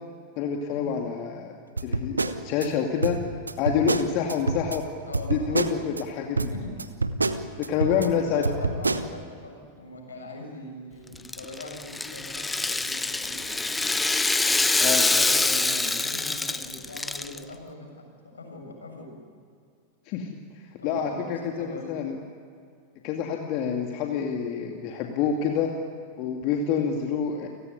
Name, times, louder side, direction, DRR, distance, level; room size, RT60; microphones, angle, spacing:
voice 1, 0.4-3.2 3.6-4.9 5.3-6.5 7.6-8.4 14.8-15.1 20.1-20.3 20.6-22.2 23.0-25.7 26.2-27.5, left 7 dB, 40° left, 2 dB, 2.4 m, -27 dB
sound 1, 1.8-2.7 3.0-4.8 5.1-6.0 6.4-8.1 8.4-9.1, right 3 dB, 80° right, 1.1 m, -27 dB
voice 2, 5.1-5.9 6.5-6.8 7.8-13.9 15.0-18.1 18.3-19.1 20.8-22.0, left 2 dB, 75° left, 2 dB, 7.1 m, -40 dB
Rattle (instrument), 11.2-17.4, left 3 dB, 10° left, 1.1 m, -25 dB
29.5 x 18.5 x 9.5 m, 2.3 s
figure-of-eight pair, 90°, 0 cm